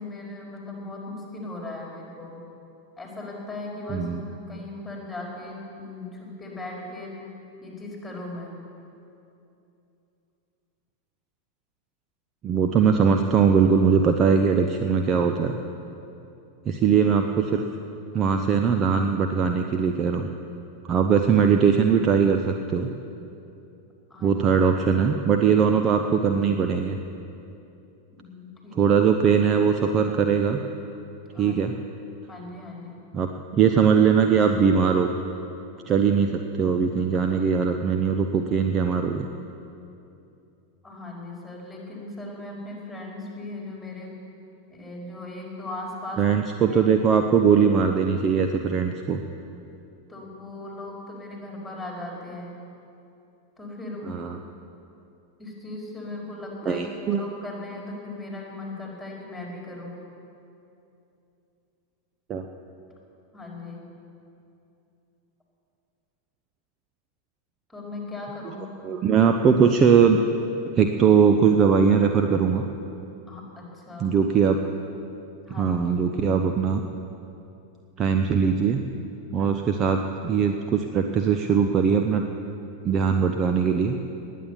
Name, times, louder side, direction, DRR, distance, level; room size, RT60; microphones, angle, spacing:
voice 1, 0.0-2.4 3.0-7.1 7.6-8.6 24.1-24.4 28.1-28.9 31.3-31.6 32.3-33.0 40.8-44.1 44.7-46.4 46.6-46.8 50.1-52.6 53.6-54.2 55.4-60.0 63.3-63.9 67.7-68.7 73.3-74.1 75.4-75.8 79.4-79.5, left 2 dB, 5° left, -2 dB, 4.7 m, -38 dB
voice 2, 3.9-4.2 12.4-15.6 16.7-17.6 18.1-20.3 20.9-22.9 24.2-27.0 28.8-30.6 31.4-31.7 33.1-35.1 35.9-39.3 46.2-49.2 54.1-54.4 56.7-57.2 62.3-62.4 68.8-70.2 70.7-72.6 74.0-74.6 75.6-76.8 78.0-78.8 79.3-82.2 82.8-84.0, right 6 dB, 30° right, 5 dB, 0.8 m, -21 dB
19.5 x 9.4 x 7.2 m, 2.7 s
figure-of-eight pair, 90°, 0 cm